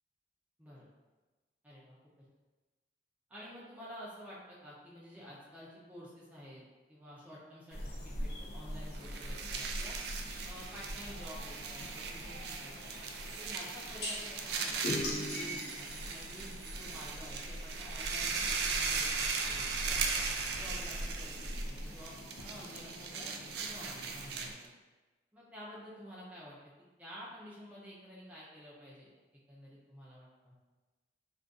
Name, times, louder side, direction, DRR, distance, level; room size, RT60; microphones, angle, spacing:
voice 1, 1.6-2.0 3.3-6.6 6.9-10.0 10.4-12.9 13.4-20.2 20.5-22.2 22.4-24.7 25.3-26.6 27.0-29.1 29.5-30.6, equal, 10° right, -8 dB, 0.6 m, -51 dB
sound 1, 7.7-24.5, equal, 60° left, 0.4 m, -44 dB
sound 2, 8.9-24.7, right 5 dB, 70° right, 0.3 m, -38 dB
sound 3, 14.0-14.1 14.8-17.0, left 1 dB, 80° left, 1.0 m, -38 dB
2.5 x 2.4 x 3.6 m, 1.2 s
head